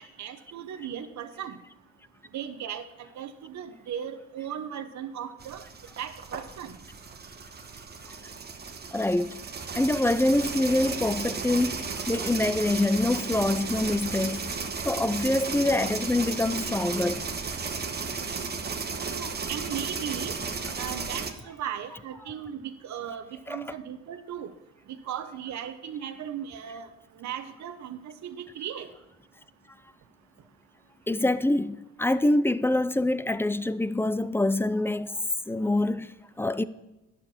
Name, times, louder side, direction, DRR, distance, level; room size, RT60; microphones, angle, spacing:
voice 1, 0.2-1.6 2.3-5.7 6.0-6.8 18.9-20.3 20.8-24.5 24.9-26.9 27.1-28.9, right 9 dB, 65° right, 0.9 m, -37 dB
sound 1, 5.4-21.3, right 4 dB, 35° right, 1.2 m, -34 dB
voice 2, 8.9-9.4 9.8-14.5 14.8-17.3 22.1-22.3 23.5-23.8 31.1-35.2 35.5-36.6, left 2 dB, 10° left, 0.5 m, -25 dB
10.5 x 6.8 x 7.1 m
cardioid pair, 90°, 30 cm